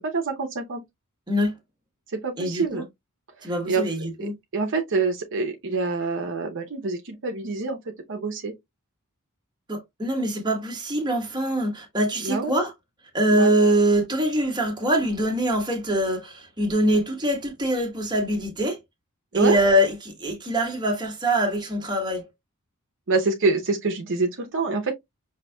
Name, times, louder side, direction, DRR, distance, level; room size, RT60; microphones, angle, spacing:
voice 1, 0.1-0.8 2.1-2.9 3.4-3.8 4.2-7.8 8.1-8.5 12.2-12.5 13.3-13.5 19.3-19.6 23.1-24.9, right 3 dB, 60° right, 0.7 m, -26 dB
voice 2, 2.4-2.8 3.4-4.3 9.7-12.7 13.1-18.8 19.3-22.3, right 1 dB, 20° right, 1.3 m, -23 dB
5.6 x 2.7 x 2.2 m
head